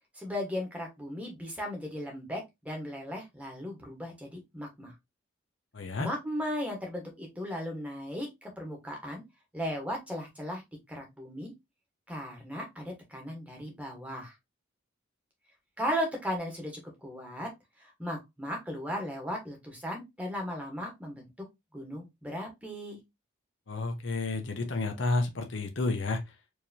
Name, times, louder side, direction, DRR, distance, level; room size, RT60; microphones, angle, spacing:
voice 1, 0.1-4.9 6.0-9.2 9.5-10.6 10.9-11.5 12.1-14.3 15.8-17.5 17.8-21.3 21.7-23.0, equal, 5° right, 1.2 m, -36 dB
voice 2, 5.7-6.1 23.7-26.2, left 3 dB, 65° left, 0.8 m, -30 dB
4.7 x 2.8 x 2.7 m
head